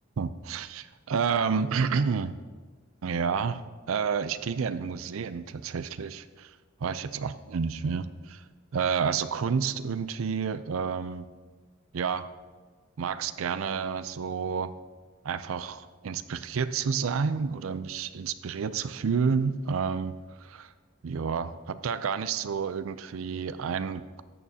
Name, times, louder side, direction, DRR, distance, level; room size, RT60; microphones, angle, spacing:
voice 1, 0.2-2.4 3.0-6.5 6.8-8.4 8.7-11.2 11.9-12.3 13.0-14.7 15.2-20.1 20.4-20.7 21.0-24.2, right 6 dB, 90° right, 13 dB, 0.4 m, -30 dB
14.0 x 8.5 x 2.8 m, 1.4 s
head